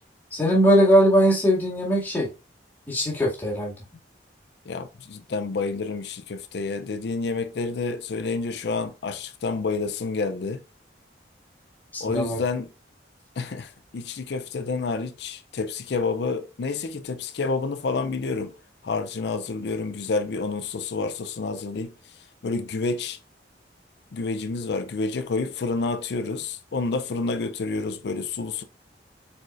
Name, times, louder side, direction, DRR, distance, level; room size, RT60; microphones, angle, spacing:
voice 1, 0.3-2.3 2.9-3.7 11.9-12.4, equal, 10° left, 2.1 m, -20 dB
voice 2, 4.7-10.6 12.0-12.7 13.4-18.5 18.8-21.9 22.4-23.2 24.1-28.6, left 4 dB, 65° left, 0.4 m, -29 dB
4.7 x 4.5 x 2.4 m
head